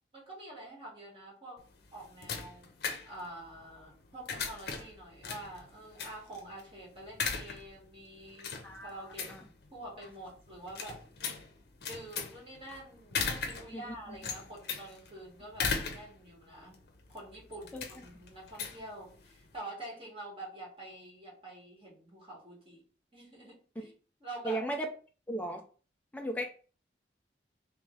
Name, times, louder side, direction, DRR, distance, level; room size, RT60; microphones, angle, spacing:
voice 1, 0.1-1.6 1.9-2.7 3.0-8.5 8.8-9.4 9.7-11.0 11.8-16.8 17.1-22.8 23.1-23.9 24.2-24.6, right 1 dB, 30° right, -4 dB, 1.5 m, -47 dB
sound 1, 1.6-19.6, left 5 dB, 60° left, 0.7 m, -39 dB
voice 2, 24.4-24.9 25.3-25.6 26.1-26.5, right 1 dB, 10° left, 2 dB, 0.4 m, -35 dB
3.1 x 3.1 x 3.7 m, 0.38 s
head